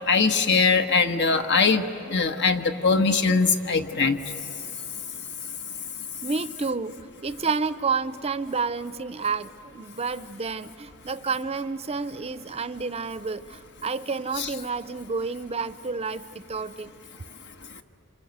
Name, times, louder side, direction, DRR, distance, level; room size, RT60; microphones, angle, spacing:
voice 1, 0.1-1.8 2.1-4.2 14.4-14.5, left 4 dB, 55° left, 6 dB, 1.4 m, -21 dB
voice 2, 6.2-16.9, right 4 dB, 30° right, 13 dB, 0.6 m, -30 dB
27.0 x 27.0 x 8.1 m, 3.0 s
head